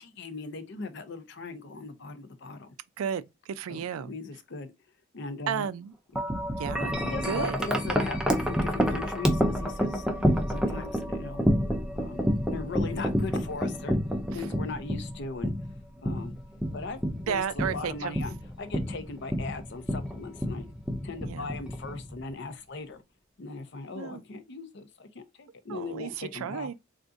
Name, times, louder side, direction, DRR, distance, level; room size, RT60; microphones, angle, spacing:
voice 1, 0.0-2.7 3.7-4.7 5.1-5.7 6.1-6.2 7.0-10.1 10.5-11.5 11.9-14.0 14.3-15.5 16.0-16.3 16.7-17.0 17.3-20.7 21.0-23.0 23.4-26.7, left 3 dB, 55° left, 0.6 m, -39 dB
voice 2, 3.0-4.1 5.5-5.9 6.6-7.0 7.2-7.6 14.3-14.4 17.3-18.2 21.2-21.5 23.9-24.2 25.7-26.7, right 8 dB, 85° right, 0.3 m, -33 dB
Wind chime, 6.2-22.3, equal, 5° right, 0.4 m, -29 dB
3.7 x 2.5 x 2.5 m
head